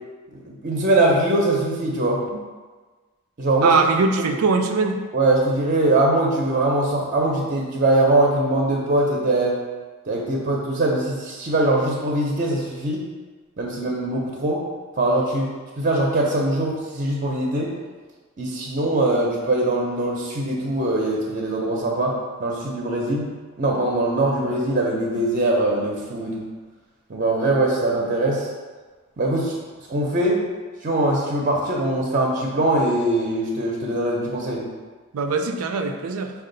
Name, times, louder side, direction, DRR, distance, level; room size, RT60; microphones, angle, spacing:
voice 1, 0.3-2.2 3.4-3.7 5.1-9.6 10.1-13.0 13.6-14.6 15.0-15.5 15.8-17.7 18.4-22.1 22.4-23.3 23.6-26.4 27.1-28.5 29.2-29.6 29.9-30.4 30.8-34.6, right 2 dB, 40° right, -2 dB, 0.6 m, -22 dB
voice 2, 3.6-5.0 35.1-36.3, right 4 dB, 85° right, 5 dB, 0.4 m, -21 dB
5.3 x 2.3 x 3.8 m, 1.4 s
head